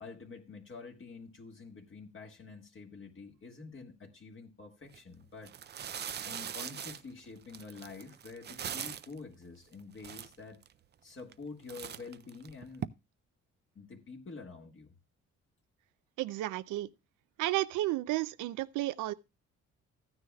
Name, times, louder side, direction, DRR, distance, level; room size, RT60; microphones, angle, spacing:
voice 1, 0.0-5.5 6.2-10.6 11.0-12.9 13.7-14.9, left 4 dB, 45° left, 1.6 m, -48 dB
sound 1, 4.8-5.0 5.4-9.2 9.7-9.8 10.0-10.7 11.2-11.4 11.7-12.9, right 9 dB, 35° right, 0.4 m, -41 dB
voice 2, 16.2-16.9 17.4-19.1, right 16 dB, 90° right, 0.5 m, -32 dB
14.0 x 9.7 x 2.3 m
cardioid pair, 90°, 30 cm